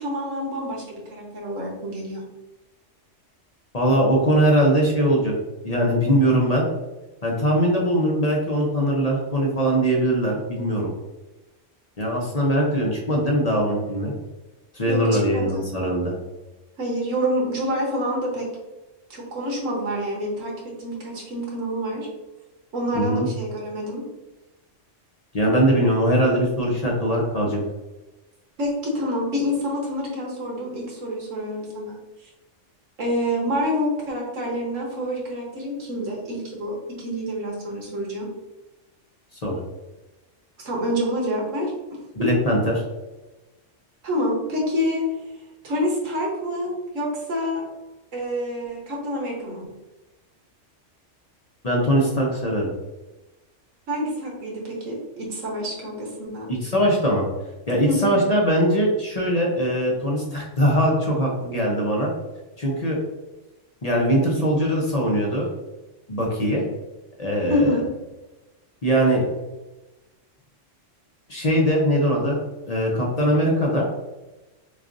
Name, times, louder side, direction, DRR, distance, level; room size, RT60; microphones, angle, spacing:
voice 1, 0.0-2.2 14.9-15.7 16.8-18.5 19.1-20.5 20.8-22.1 22.7-24.0 28.6-32.0 33.0-38.3 40.6-41.7 42.2-42.3 44.0-45.0 45.6-47.6 48.1-49.7 53.9-56.5 57.8-58.2 67.5-67.8, equal, 90° right, -2 dB, 1.6 m, -27 dB
voice 2, 3.7-5.3 5.6-6.6 7.2-10.9 12.0-14.1 14.7-16.1 22.9-23.3 25.3-27.6 39.4-39.6 42.1-42.8 51.6-52.7 56.5-57.3 57.7-62.1 62.6-63.0 63.8-65.5 66.1-66.6 67.2-67.8 68.8-69.2 71.3-72.4 72.7-73.9, equal, 35° left, -2 dB, 0.8 m, -21 dB
6.4 x 2.4 x 2.6 m, 1.1 s
omnidirectional pair, 1.3 m